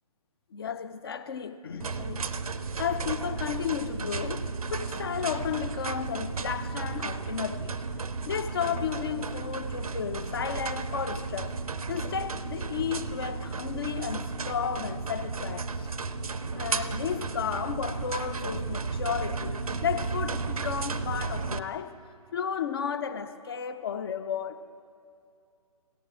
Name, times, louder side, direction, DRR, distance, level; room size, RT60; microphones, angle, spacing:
voice 1, 0.5-2.3 2.8-7.8 8.3-11.5 11.9-15.9 16.5-22.0 22.3-24.6, left 8 dB, 40° left, 0.6 m, -33 dB
sound 1, 1.8-21.6, right 4 dB, 70° right, 0.6 m, -34 dB
17.5 x 17.0 x 2.5 m
figure-of-eight pair, 135°, 20 cm